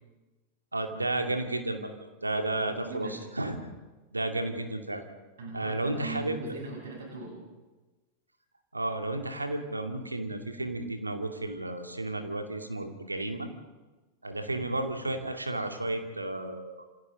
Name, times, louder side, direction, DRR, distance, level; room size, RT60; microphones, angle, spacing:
voice 1, 0.7-1.9 2.2-3.1 3.4-3.6 4.1-5.0 5.5-6.4 8.7-13.5 14.2-16.8, right 2 dB, 80° right, 5 dB, 2.5 m, -32 dB
voice 2, 2.5-3.7 4.4-4.5 5.4-7.5, right 2 dB, 65° right, -2 dB, 7.6 m, -41 dB
28.5 x 27.5 x 3.8 m, 1.2 s
figure-of-eight pair, 90°, 0 cm